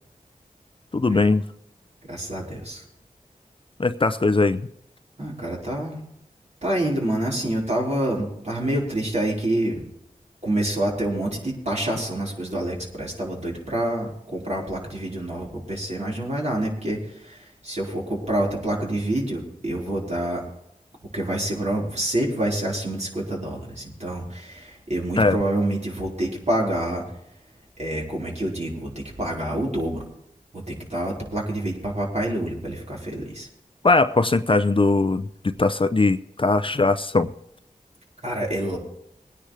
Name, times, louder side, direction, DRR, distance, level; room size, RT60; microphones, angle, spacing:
voice 1, 0.9-1.4 3.8-4.7 25.2-25.4 33.8-37.3, left 3 dB, 35° left, 0.6 m, -20 dB
voice 2, 2.1-2.8 5.2-6.0 6.6-9.8 10.4-20.4 21.1-27.0 27.8-30.0 30.5-33.5 38.2-38.8, right 1 dB, 50° right, 4.8 m, -27 dB
21.5 x 10.0 x 3.4 m
cardioid pair, 45°, 15 cm